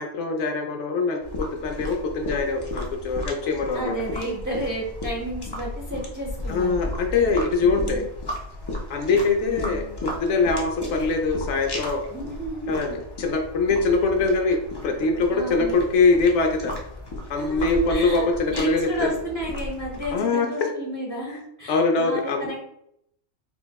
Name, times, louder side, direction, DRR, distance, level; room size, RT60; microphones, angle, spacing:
voice 1, 0.0-3.9 6.5-8.0 8.9-12.0 12.7-14.6 14.8-16.7 17.3-19.1 20.1-20.5 21.7-22.5, left 3 dB, 85° left, 3 dB, 0.9 m, -23 dB
sound 1, 1.2-20.2, left 1 dB, 35° left, 0.4 m, -35 dB
voice 2, 3.7-6.7 7.6-8.1 9.5-10.0 12.1-12.8 15.3-15.8 17.3-22.6, equal, 20° right, -3 dB, 0.5 m, -32 dB
4.2 x 2.0 x 2.2 m, 0.74 s
omnidirectional pair, 1.2 m